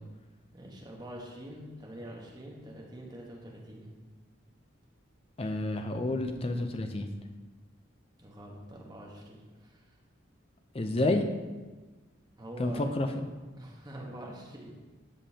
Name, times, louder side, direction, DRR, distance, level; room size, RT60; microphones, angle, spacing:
voice 1, 0.5-3.9 8.2-10.0 12.4-12.9 13.6-14.7, right 1 dB, 20° right, -2 dB, 1.2 m, -45 dB
voice 2, 5.4-7.1 10.7-11.2 12.6-13.3, left 2 dB, 30° left, 6 dB, 0.5 m, -29 dB
12.5 x 5.3 x 2.8 m, 1.3 s
head